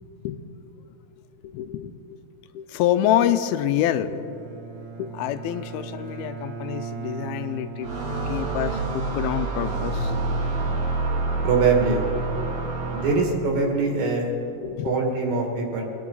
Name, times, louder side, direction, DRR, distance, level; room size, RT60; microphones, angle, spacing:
voice 1, 1.4-2.2 2.5-4.2 5.0-10.2 12.7-12.8 14.6-15.0, left 11 dB, 85° left, 11 dB, 2.5 m, -26 dB
Bowed string instrument, 3.8-12.2, right 5 dB, 90° right, 1.3 m, -39 dB
sound 1, 7.8-13.5, right 3 dB, 55° right, 2.1 m, -27 dB
voice 2, 11.4-12.0 12.9-14.3 14.8-15.9, right 4 dB, 70° right, 0 dB, 3.5 m, -23 dB
22.0 x 10.5 x 3.9 m, 2.8 s
omnidirectional pair, 4.3 m